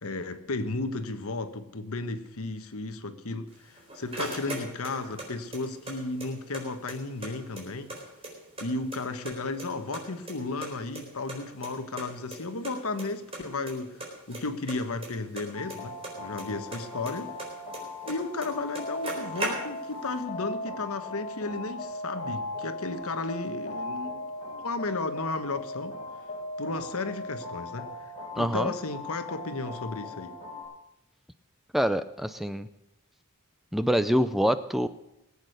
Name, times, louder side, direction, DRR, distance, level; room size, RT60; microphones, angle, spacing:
voice 1, 0.0-7.9 8.6-17.4 18.1-24.3 24.6-26.0 26.6-27.9 28.4-30.4, left 3 dB, 70° left, 1.2 m, -34 dB
sound 1, 3.5-5.3 5.5-6.6 6.9-7.0 7.2-8.6 8.9-9.7 9.9-11.4 11.6-11.7 12.0-12.1 12.3-12.4 12.6-13.0 13.3-13.7 14.0-16.4 16.7-18.1 18.4-18.5 18.7-20.0, right 2 dB, 25° right, 4.1 m, -37 dB
sound 2, 15.5-30.6, left 2 dB, 35° left, 5.9 m, -38 dB
voice 2, 28.4-28.7 31.7-32.7 33.7-34.9, equal, ahead, 0.4 m, -25 dB
20.0 x 8.3 x 6.6 m
head